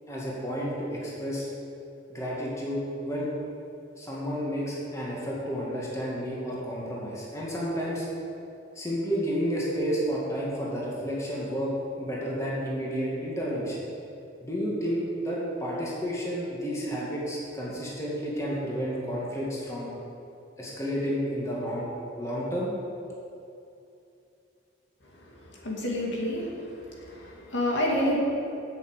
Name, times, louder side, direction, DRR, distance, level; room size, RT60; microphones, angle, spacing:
voice 1, 0.1-1.5 2.1-3.3 4.0-8.1 8.8-11.7 12.0-13.8 14.4-19.9 20.6-21.9 22.2-22.7, equal, 15° left, -5 dB, 1.9 m, -31 dB
voice 2, 25.6-26.5 27.1-28.2, left 1 dB, 80° left, -2 dB, 2.2 m, -28 dB
8.1 x 6.9 x 8.1 m, 2.7 s
head